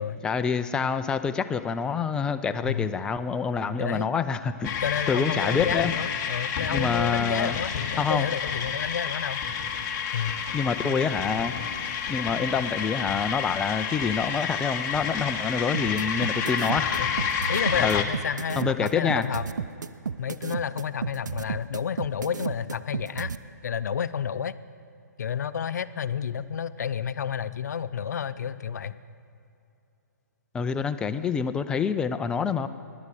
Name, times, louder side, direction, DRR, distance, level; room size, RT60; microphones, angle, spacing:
voice 1, 0.2-4.7 5.1-5.9 6.7-7.6 8.0-8.3 10.5-11.5 12.1-17.0 17.8-18.1 18.6-19.3 30.5-32.7, left 6 dB, 10° left, 10 dB, 0.3 m, -27 dB
voice 2, 3.8-4.1 4.8-9.4 10.1-10.3 15.8-16.0 17.0-17.1 17.5-19.4 20.2-23.3 23.6-24.5 25.2-29.0, left 7 dB, 65° left, 15 dB, 0.5 m, -30 dB
sound 1, 4.6-18.0, left 7 dB, 25° left, 1.0 m, -30 dB
sound 2, 15.7-23.4, right 6 dB, 75° right, 0.5 m, -32 dB
15.5 x 10.5 x 4.9 m, 2.7 s
hypercardioid pair, 135°, 10 cm